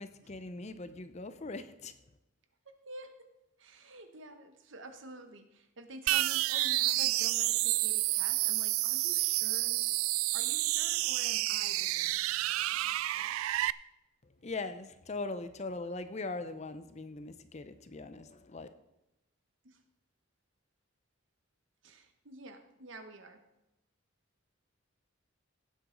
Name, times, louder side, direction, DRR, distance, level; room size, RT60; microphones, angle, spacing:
voice 1, 0.0-1.9 14.4-18.7, left 3 dB, 35° left, 11 dB, 0.6 m, -40 dB
voice 2, 2.6-3.3 3.6-9.9 10.3-13.4 19.6-19.8 21.8-23.5, right 2 dB, 65° right, 7 dB, 1.1 m, -49 dB
sound 1, 6.1-13.7, right 17 dB, 85° right, 0.3 m, -30 dB
17.5 x 7.8 x 3.9 m, 0.93 s
head